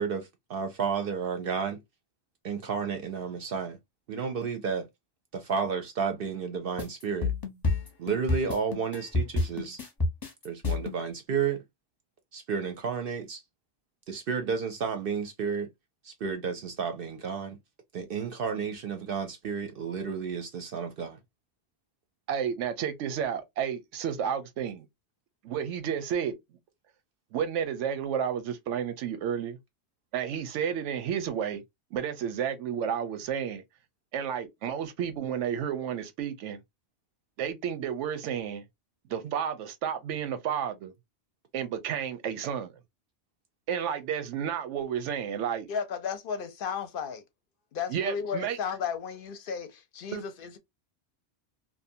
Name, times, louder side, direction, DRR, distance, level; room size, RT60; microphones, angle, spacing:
voice 1, 0.0-1.8 2.4-3.8 4.1-4.9 5.3-7.3 8.0-9.8 10.4-11.6 12.3-13.4 14.1-15.7 16.0-17.6 17.9-21.2, right 6 dB, 60° right, 0.7 m, -32 dB
sound 1, 6.8-11.0, left 3 dB, 20° left, 0.7 m, -28 dB
voice 2, 22.3-24.9 25.4-26.3 27.3-29.6 30.1-31.6 31.9-33.6 34.1-36.6 37.4-38.6 39.1-40.9 41.5-42.7 43.7-45.7 47.9-48.6 50.1-50.2, right 8 dB, 90° right, 0.9 m, -31 dB
voice 3, 45.7-47.2 47.7-50.6, left 6 dB, 60° left, 0.7 m, -34 dB
2.6 x 2.2 x 2.6 m
omnidirectional pair, 1.2 m